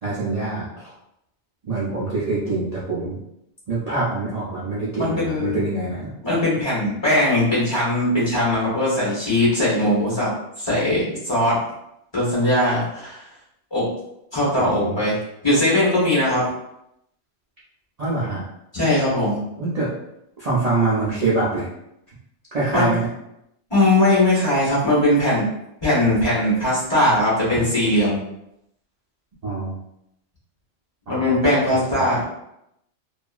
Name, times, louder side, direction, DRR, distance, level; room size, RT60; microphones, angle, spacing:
voice 1, 0.0-0.9 1.7-3.2 3.7-6.1 14.6-15.0 18.0-18.4 19.6-19.9 20.4-21.7 22.5-23.1 27.5-27.6 29.4-29.7 31.1-31.4 31.9-32.0, right 3 dB, 40° right, -9 dB, 0.7 m, -25 dB
voice 2, 5.0-5.6 6.2-10.3 10.6-11.6 12.1-13.2 13.7-13.9 14.3-15.2 15.4-16.5 18.7-19.4 22.7-22.9 23.7-25.5 25.8-28.2 31.1-32.2, left 1 dB, 25° left, -8 dB, 1.1 m, -20 dB
2.8 x 2.4 x 2.3 m, 0.81 s
omnidirectional pair, 1.1 m